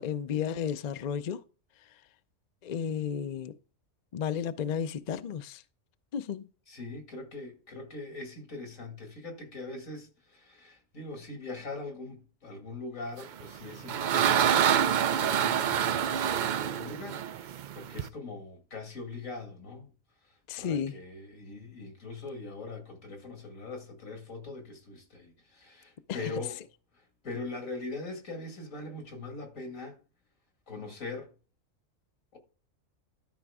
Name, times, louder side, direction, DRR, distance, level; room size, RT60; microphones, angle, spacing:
voice 1, 0.0-1.4 2.6-3.5 4.1-5.6 6.1-6.5 20.5-21.0 26.1-26.3, left 8 dB, 55° left, 0.5 m, -33 dB
voice 2, 6.7-19.9 20.6-26.6 27.2-30.0 30.7-31.3 32.3-32.4, left 3 dB, 80° left, 2.5 m, -42 dB
sound 1, 13.4-18.1, right 9 dB, 80° right, 0.4 m, -26 dB
12.5 x 5.0 x 3.6 m
omnidirectional pair, 1.3 m